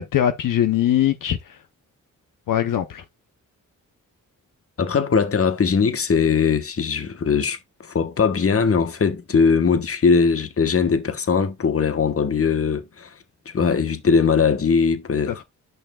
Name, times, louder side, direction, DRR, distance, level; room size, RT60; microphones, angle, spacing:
voice 1, 0.0-1.6 2.5-3.0 15.3-15.4, left 11 dB, 70° left, 0.7 m, -21 dB
voice 2, 4.8-13.1 13.5-15.4, left 5 dB, 45° left, 1.1 m, -20 dB
9.1 x 5.6 x 2.3 m
cardioid pair, 65°, 33 cm